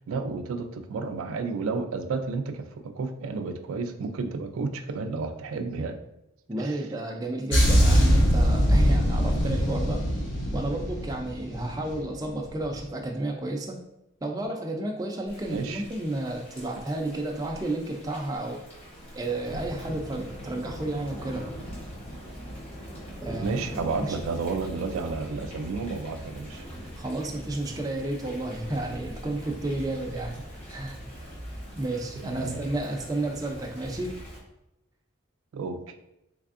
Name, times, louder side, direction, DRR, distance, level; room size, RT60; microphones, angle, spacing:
voice 1, 0.1-6.0 6.6-6.8 15.5-15.8 23.4-26.6 32.2-32.7 35.5-36.0, right 4 dB, 90° right, 7 dB, 0.3 m, -32 dB
voice 2, 6.5-10.1 10.5-13.8 14.2-18.6 19.1-21.5 23.2-23.6 24.0-24.2 26.9-30.4 30.7-31.0 31.8-34.1, right 2 dB, 15° right, 0 dB, 0.4 m, -32 dB
sound 1, 7.5-12.1 12.3-12.6, equal, 65° left, 0.8 m, -22 dB
Thunder / Rain, 15.3-34.4, equal, 30° left, 1.0 m, -41 dB
3.3 x 3.3 x 2.5 m, 0.89 s
head